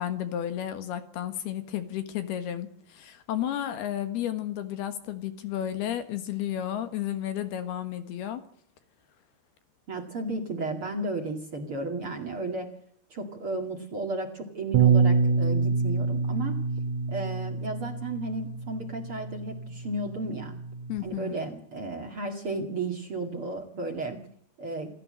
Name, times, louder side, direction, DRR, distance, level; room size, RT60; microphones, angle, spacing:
voice 1, 0.0-8.4 20.9-21.3, left 11 dB, 70° left, 10 dB, 3.4 m, -32 dB
voice 2, 9.9-12.7 13.1-16.6 17.1-20.6 21.0-24.2 24.6-24.9, right 2 dB, 40° right, 4 dB, 2.5 m, -33 dB
Bass guitar, 14.7-21.0, right 5 dB, 70° right, 1.9 m, -26 dB
28.0 x 15.0 x 7.8 m, 0.65 s
omnidirectional pair, 4.9 m